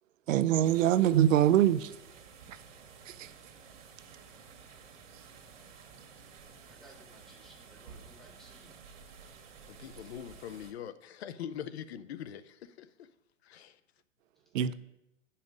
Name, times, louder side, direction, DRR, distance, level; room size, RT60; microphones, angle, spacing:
voice 1, 0.3-1.9 14.5-14.7, right 11 dB, 80° right, 0.6 m, -23 dB
sound 1, 0.6-10.7, right 5 dB, 65° right, 1.6 m, -53 dB
voice 2, 6.7-8.7 9.8-10.1 14.6-14.7, equal, ahead, 0.6 m, -59 dB
voice 3, 9.7-12.9 13.4-13.7, left 9 dB, 55° left, 0.6 m, -42 dB
9.3 x 5.7 x 5.2 m
hypercardioid pair, 160°, 39 cm